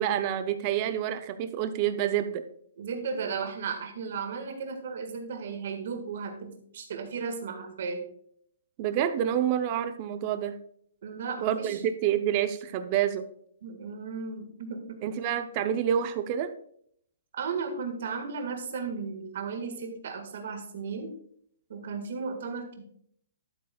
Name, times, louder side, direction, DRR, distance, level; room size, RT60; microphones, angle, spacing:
voice 1, 0.0-2.4 8.8-10.5 11.4-13.3 15.0-16.5, right 10 dB, 20° right, 10 dB, 0.5 m, -28 dB
voice 2, 2.8-8.0 11.0-11.8 13.6-15.0 17.3-21.1 21.7-22.8, right 5 dB, 45° right, 6 dB, 1.6 m, -35 dB
12.0 x 7.8 x 2.3 m, 0.64 s
hypercardioid pair, 180°, 0 cm